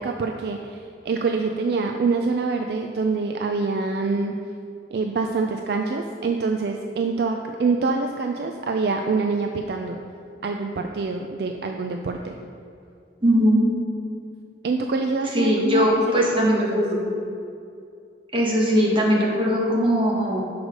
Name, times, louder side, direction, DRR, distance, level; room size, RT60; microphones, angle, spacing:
voice 1, 0.0-4.3 4.9-10.0 10.4-12.3 14.6-15.9 16.3-16.8, right 4 dB, 55° right, 3 dB, 0.3 m, -25 dB
voice 2, 13.2-13.7 15.3-17.1 18.3-20.4, equal, 30° right, -4 dB, 1.2 m, -20 dB
6.3 x 4.8 x 5.1 m, 2.5 s
head